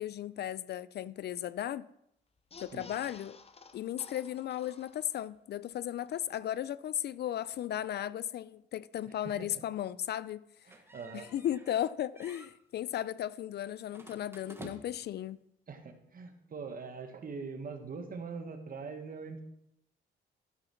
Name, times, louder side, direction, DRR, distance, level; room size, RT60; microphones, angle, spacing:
voice 1, 0.0-1.9 2.6-3.4 3.7-10.4 11.1-15.4, left 11 dB, 55° left, 0.4 m, -35 dB
sound 1, 2.4-5.4 5.7-5.8 6.1-6.2, left 4 dB, 30° left, 0.8 m, -53 dB
sound 2, 10.7-11.9 12.2-12.5 13.9-15.1, right 2 dB, 10° right, 1.3 m, -51 dB
voice 2, 10.7-11.3 15.7-19.4, right 5 dB, 45° right, 1.6 m, -42 dB
13.0 x 5.0 x 5.8 m
cardioid pair, 90°, 20 cm